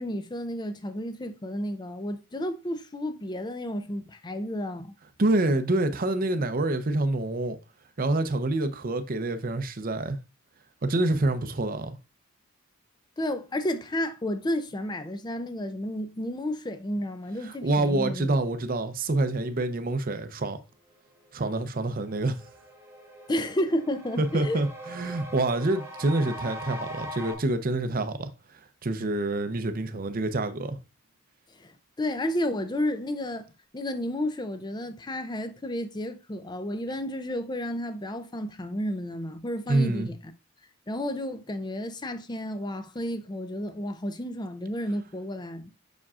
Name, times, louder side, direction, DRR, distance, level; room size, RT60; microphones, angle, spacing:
voice 1, 0.0-4.9 13.2-18.3 23.3-24.6 31.6-31.7 32.0-33.5 33.7-40.3 40.9-45.7, left 1 dB, 20° left, 0.5 m, -31 dB
voice 2, 5.2-7.6 8.0-10.2 10.8-12.0 17.5-20.6 21.3-22.4 24.2-28.3 28.8-30.8 39.7-40.1, right 2 dB, 40° right, 0.6 m, -27 dB
sound 1, 22.0-27.3, equal, 10° right, 1.2 m, -41 dB
7.3 x 6.0 x 2.4 m
head